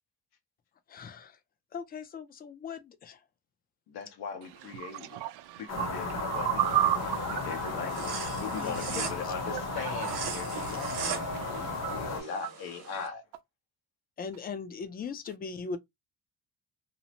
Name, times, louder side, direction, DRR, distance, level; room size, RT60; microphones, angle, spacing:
voice 1, 0.9-1.4 1.7-3.2 8.6-8.8 9.2-9.3 14.2-15.8, left 5 dB, 25° left, 0.4 m, -39 dB
voice 2, 3.9-5.2 5.6-6.9 7.4-8.1 8.4-11.1 11.5-13.2, left 6 dB, 80° left, 1.0 m, -40 dB
voice 3, 4.7-8.2 8.5-8.7 9.5-12.0, right 14 dB, 90° right, 0.6 m, -34 dB
sound 1, 5.7-12.2, left 3 dB, 40° left, 1.0 m, -35 dB
sound 2, 6.6-13.1, right 6 dB, 70° right, 1.0 m, -41 dB
2.7 x 2.0 x 2.8 m
cardioid pair, 145°, 38 cm